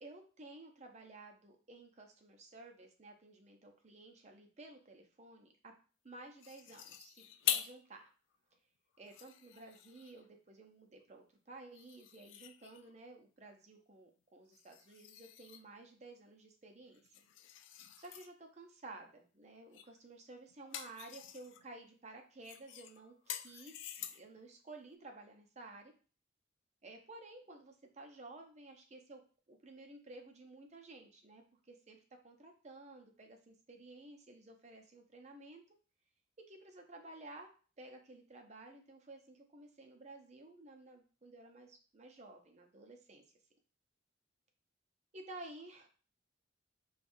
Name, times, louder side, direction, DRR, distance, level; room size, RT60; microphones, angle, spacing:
voice 1, 0.0-5.7 6.0-8.1 9.0-17.1 18.0-25.9 26.8-29.2 29.5-32.0 32.2-35.6 36.5-37.5 37.8-43.2 45.1-45.9, right 2 dB, 40° right, 3 dB, 0.7 m, -54 dB
sound 1, 6.4-7.8 8.3-8.4 8.9-10.3 11.7-13.0 14.5-15.7 16.9-18.3 19.7-20.0 20.3-21.6 22.4-24.4, left 11 dB, 85° left, 0.3 m, -44 dB
5.1 x 2.4 x 2.6 m, 0.38 s
head